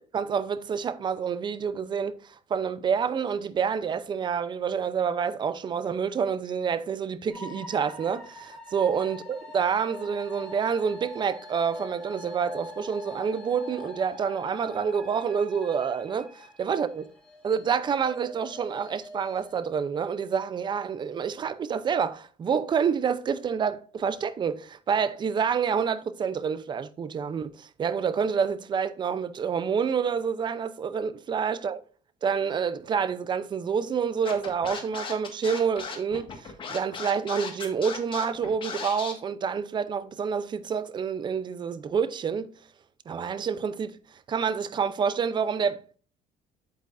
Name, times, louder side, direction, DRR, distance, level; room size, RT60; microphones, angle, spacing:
voice 1, 0.1-17.0 17.4-31.8 32.2-42.5 43.1-46.0, right 6 dB, 30° right, 0.6 m, -28 dB
sound 1, 7.3-19.5, left 1 dB, 5° left, 2.0 m, -44 dB
Scratching (performance technique), 34.3-39.1, left 5 dB, 35° left, 1.6 m, -36 dB
8.2 x 8.0 x 2.6 m
cardioid pair, 135°, 14 cm